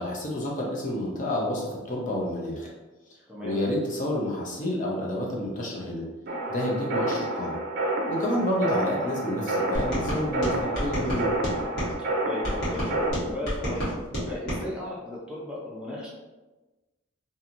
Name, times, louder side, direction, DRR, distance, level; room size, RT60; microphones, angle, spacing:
voice 1, 0.0-2.7 3.4-6.0 6.5-7.6 8.1-11.3, left 1 dB, 40° left, -3 dB, 0.5 m, -29 dB
voice 2, 3.3-3.6 8.3-8.5 12.2-13.9 14.3-16.1, left 1 dB, 5° right, -6 dB, 0.6 m, -35 dB
sound 1, 6.3-13.1, right 1 dB, 50° right, 0.5 m, -29 dB
sound 2, 9.7-11.9 12.4-14.6, equal, 55° left, 1.4 m, -30 dB
2.9 x 2.6 x 2.5 m, 1.2 s
head